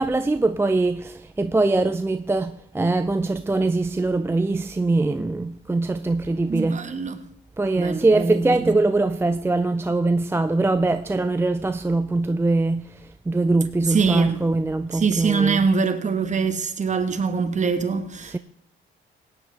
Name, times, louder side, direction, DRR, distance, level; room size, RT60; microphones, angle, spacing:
voice 1, 0.0-6.9 7.6-15.7 18.3-18.4, right 2 dB, 10° right, 0.4 m, -22 dB
voice 2, 6.5-7.2 7.7-8.7 13.9-14.4 14.9-18.4, right 5 dB, 35° right, 1.3 m, -23 dB
17.5 x 9.7 x 3.4 m
cardioid pair, 90°, 20 cm